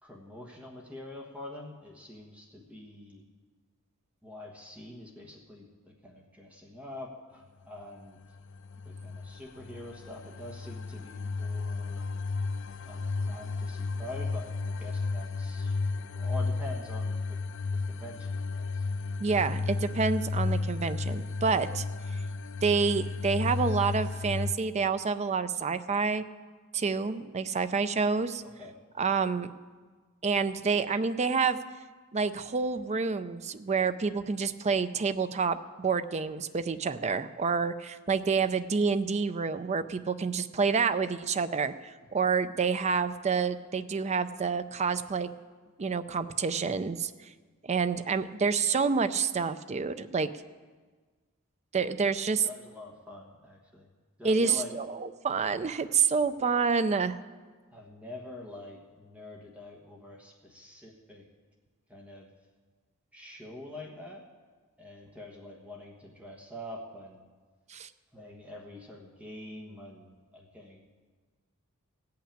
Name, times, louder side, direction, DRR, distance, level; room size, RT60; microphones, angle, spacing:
voice 1, 0.0-3.2 4.2-8.2 8.8-12.0 12.9-17.4 17.7-18.8 28.4-28.8 52.4-53.9 54.2-54.8 57.7-61.2 61.9-62.3 63.1-64.2 64.8-67.3 68.1-70.9, left 1 dB, 5° right, -1 dB, 1.3 m, -45 dB
sound 1, 8.2-24.5, left 3 dB, 60° left, 0.5 m, -33 dB
voice 2, 19.2-21.8 22.6-26.2 26.7-28.4 29.0-29.5 30.2-31.6 32.1-45.3 45.8-47.1 47.6-50.3 51.7-52.5 54.2-57.2 67.7-67.9, right 5 dB, 30° right, 12 dB, 0.5 m, -28 dB
16.5 x 5.8 x 8.8 m, 1.4 s
head